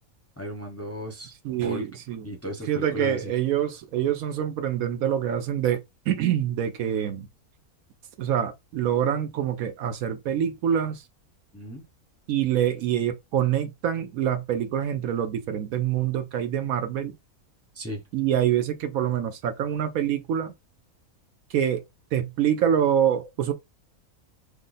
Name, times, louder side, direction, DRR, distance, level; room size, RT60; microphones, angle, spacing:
voice 1, 0.4-1.3 1.6-1.9 2.2-3.3 11.5-11.8 17.7-18.0, equal, 15° left, 0.6 m, -35 dB
voice 2, 1.4-2.3 2.7-5.8 6.1-7.3 8.2-11.0 12.3-17.1 18.1-20.5 21.5-21.8 22.1-23.5, right 9 dB, 70° right, 1.0 m, -25 dB
3.2 x 2.2 x 3.8 m
omnidirectional pair, 1.6 m